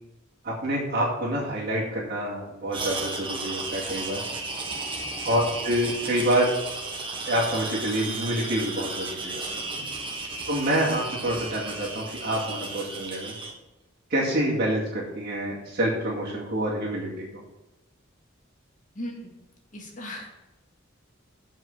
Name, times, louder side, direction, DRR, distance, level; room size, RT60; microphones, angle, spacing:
voice 1, 0.4-4.2 5.2-6.5 7.2-9.6 10.5-13.3 14.1-17.4, right 1 dB, 50° right, -9 dB, 2.3 m, -27 dB
sound 1, 2.7-13.5, right 3 dB, 25° right, 1.4 m, -34 dB
voice 2, 18.9-19.3 19.7-20.3, left 1 dB, 40° left, 0 dB, 2.0 m, -38 dB
7.7 x 5.4 x 7.3 m, 1.0 s
head